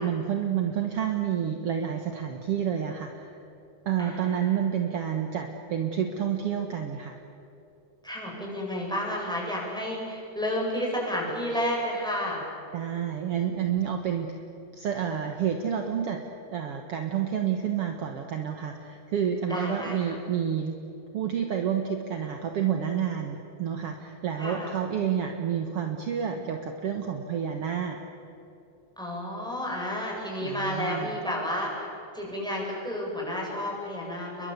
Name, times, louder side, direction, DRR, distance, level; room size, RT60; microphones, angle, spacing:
voice 1, 0.0-3.2 3.8-7.2 12.7-14.3 14.7-16.2 16.5-20.7 21.1-28.0 30.4-31.1, right 8 dB, 55° right, 4 dB, 1.6 m, -29 dB
voice 2, 4.0-4.6 8.0-12.4 19.5-20.2 24.4-24.7 29.0-31.9 32.1-34.5, left 1 dB, ahead, -2 dB, 7.5 m, -31 dB
30.0 x 22.5 x 8.1 m, 2.8 s
omnidirectional pair, 4.5 m